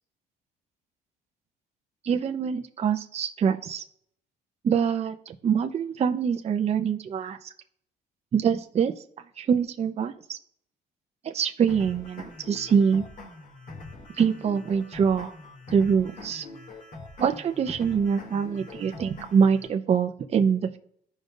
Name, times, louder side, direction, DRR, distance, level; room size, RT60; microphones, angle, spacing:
voice 1, 2.0-3.8 4.6-7.4 8.3-8.9 9.4-10.4 11.2-13.0 14.2-15.3 15.7-16.4 17.2-20.8, right 7 dB, 40° right, 5 dB, 0.7 m, -24 dB
sound 1, 11.7-19.7, left 2 dB, 55° left, 2.5 m, -44 dB
15.0 x 5.3 x 2.5 m, 0.66 s
cardioid pair, 110°, 17 cm